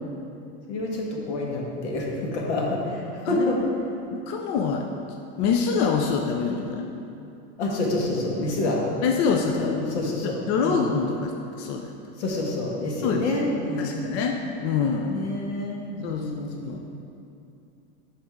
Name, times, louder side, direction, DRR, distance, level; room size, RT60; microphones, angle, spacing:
voice 1, 0.7-3.6 7.6-8.8 9.5-10.3 10.6-10.8 12.2-14.0 15.1-16.5, left 2 dB, 90° left, -2 dB, 1.6 m, -28 dB
voice 2, 4.1-4.8 5.4-6.9 9.0-10.0 10.2-11.3 11.6-11.9 13.0-13.2 13.8-15.2 16.0-16.3 16.6-16.9, left 5 dB, 50° left, 2 dB, 0.5 m, -25 dB
10.5 x 4.3 x 3.6 m, 2.7 s
supercardioid pair, 145°, 33 cm